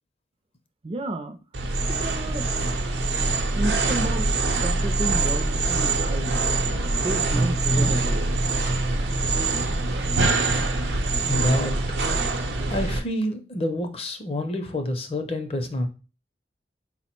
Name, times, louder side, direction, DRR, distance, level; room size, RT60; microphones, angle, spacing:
voice 1, 0.8-1.4 1.9-2.5 3.6-4.3 4.6-6.4 6.9-8.2, right 2 dB, 30° right, 7 dB, 0.4 m, -31 dB
sound 1, 1.5-13.0, right 2 dB, 80° right, 0.6 m, -24 dB
voice 2, 11.3-11.8 12.7-15.9, left 1 dB, 35° left, 6 dB, 0.5 m, -27 dB
4.3 x 2.0 x 4.3 m, 0.35 s
head